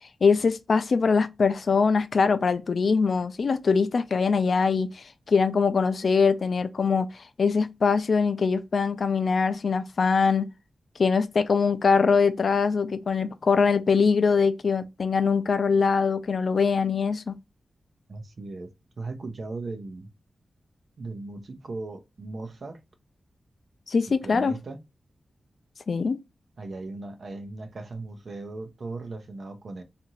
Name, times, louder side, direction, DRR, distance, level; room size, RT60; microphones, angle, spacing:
voice 1, 0.2-10.5 11.0-17.4 23.9-24.6 25.9-26.2, left 5 dB, 65° left, 0.3 m, -23 dB
voice 2, 18.1-18.7 19.0-20.1 21.0-22.8 24.2-24.8 26.6-29.8, right 3 dB, 60° right, 0.6 m, -37 dB
2.7 x 2.5 x 2.9 m
wide cardioid pair, 85°, 0 cm